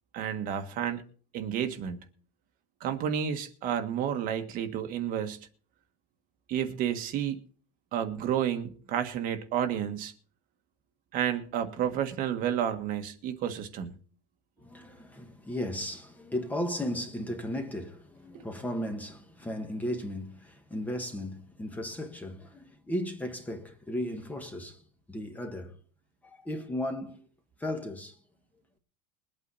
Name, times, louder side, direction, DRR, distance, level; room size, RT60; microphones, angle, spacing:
voice 1, 0.1-1.0 1.3-2.0 2.8-5.4 6.5-7.4 7.9-10.1 11.1-13.9 18.3-18.5, right 9 dB, 45° right, 1.5 m, -31 dB
voice 2, 14.6-24.8 25.1-25.8 26.2-27.3 27.6-28.2, left 1 dB, 10° left, 1.5 m, -35 dB
22.0 x 8.8 x 4.1 m
cardioid pair, 160°, 20 cm